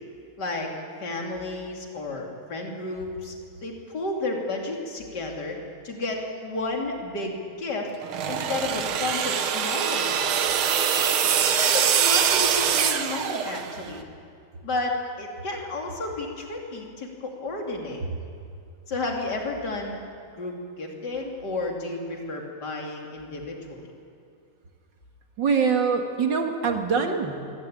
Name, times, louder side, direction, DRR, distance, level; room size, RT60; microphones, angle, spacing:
voice 1, 0.4-0.7 1.0-3.3 3.6-5.6 5.8-7.9 8.3-10.5 11.0-14.0 14.6-18.0 18.9-20.0 20.4-23.9, left 2 dB, 55° left, 0 dB, 3.4 m, -32 dB
sound 1, 8.0-13.9, right 8 dB, 85° right, 2.0 m, -24 dB
voice 2, 25.4-27.5, right 5 dB, 60° right, 3 dB, 2.6 m, -24 dB
22.5 x 18.0 x 8.8 m, 2.3 s
omnidirectional pair, 2.2 m